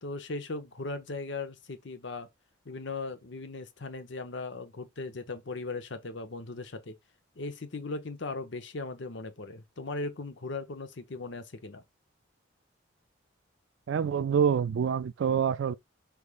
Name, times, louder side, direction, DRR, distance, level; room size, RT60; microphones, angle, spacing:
voice 1, 0.0-2.3 2.6-7.0 7.4-11.8, left 3 dB, 70° left, 0.8 m, -38 dB
voice 2, 13.9-15.7, right 7 dB, 70° right, 0.3 m, -26 dB
4.8 x 3.5 x 2.4 m
head